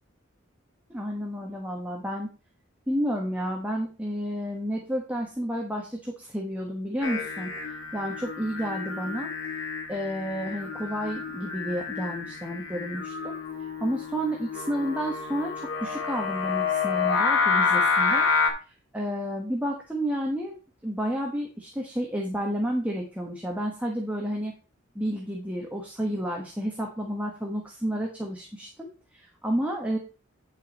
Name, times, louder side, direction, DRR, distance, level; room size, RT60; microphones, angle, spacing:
voice 1, 0.9-2.3 2.9-7.6 7.9-9.3 9.9-13.3 13.8-18.3 18.9-20.5 20.8-24.5 24.9-30.0, equal, 5° right, -1 dB, 1.2 m, -31 dB
Singing, 7.0-18.5, left 5 dB, 85° left, 2.2 m, -29 dB
9.2 x 5.6 x 4.1 m, 0.34 s
head